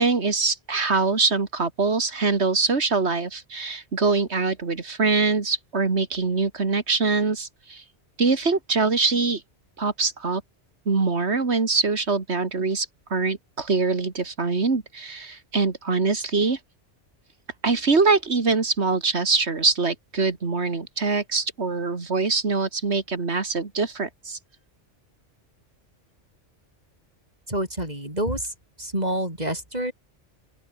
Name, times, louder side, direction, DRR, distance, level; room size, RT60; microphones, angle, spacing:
voice 1, 0.0-7.8 8.2-9.4 9.8-10.4 10.9-16.6 17.6-24.4, right 4 dB, 65° right, 2.4 m, -23 dB
voice 2, 27.5-28.4 28.8-29.9, right 1 dB, 35° right, 7.2 m, -27 dB
open air
omnidirectional pair, 1.2 m